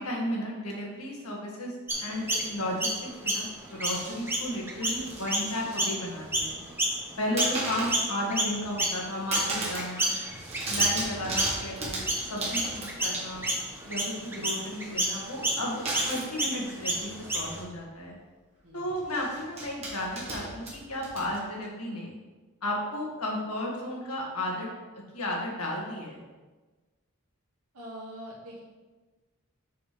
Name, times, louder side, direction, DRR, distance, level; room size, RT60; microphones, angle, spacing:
voice 1, 0.0-6.6 7.2-10.1 10.7-13.5 13.8-18.1 18.7-22.1 22.6-24.7 25.1-26.2, left 1 dB, 85° left, -3 dB, 1.9 m, -34 dB
Chirp tweet, 1.9-7.6 7.9-17.6, right 1 dB, 10° right, 0.8 m, -30 dB
sound 1, 3.8-4.4 4.9-5.8 6.1-6.7 7.4-8.1 8.5-9.0 9.3-9.9 10.2-13.6 15.9-16.3 17.3-17.4 17.7-17.9 19.0-21.6, right 2 dB, 30° right, 1.6 m, -36 dB
voice 2, 27.7-28.6, equal, 80° right, -4 dB, 2.0 m, -43 dB
6.9 x 6.0 x 3.3 m, 1.3 s
head